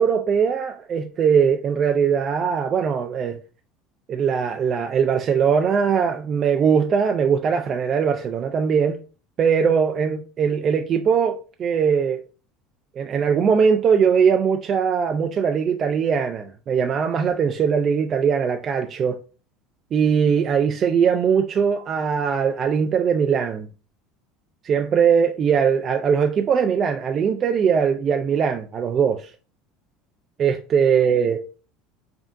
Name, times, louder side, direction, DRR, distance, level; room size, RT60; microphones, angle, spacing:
voice 1, 0.0-3.4 4.1-9.0 9.4-12.2 13.0-19.2 19.9-23.7 24.6-29.3 30.4-31.4, right 6 dB, 40° right, 0.4 m, -20 dB
5.0 x 2.7 x 2.5 m
supercardioid pair, 115°, 0 cm